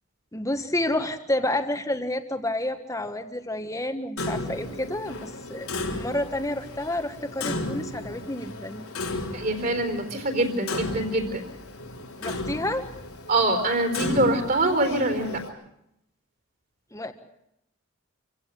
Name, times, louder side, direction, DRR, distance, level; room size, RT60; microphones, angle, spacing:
voice 1, 0.3-8.9 12.2-12.8 16.9-17.1, left 1 dB, 15° left, 7 dB, 1.5 m, -29 dB
Clock, 4.2-15.5, left 2 dB, 85° left, 3.6 m, -35 dB
voice 2, 9.3-11.4 13.3-15.4, right 2 dB, 40° right, 7 dB, 4.2 m, -24 dB
27.0 x 16.0 x 8.1 m, 0.81 s
head